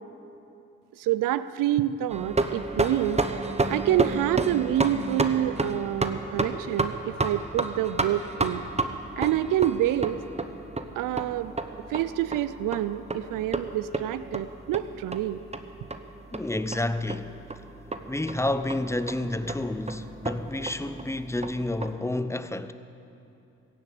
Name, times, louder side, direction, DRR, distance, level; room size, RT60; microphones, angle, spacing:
voice 1, 0.9-3.2 3.7-8.7 9.2-10.2 11.0-11.5 11.9-15.4, right 12 dB, 75° right, 0.5 m, -27 dB
sound 1, 2.1-21.9, right 2 dB, 20° right, 1.0 m, -32 dB
voice 2, 16.3-17.4 18.1-22.7, left 1 dB, 10° left, 0.7 m, -30 dB
16.5 x 7.4 x 8.2 m
supercardioid pair, 40°, 33 cm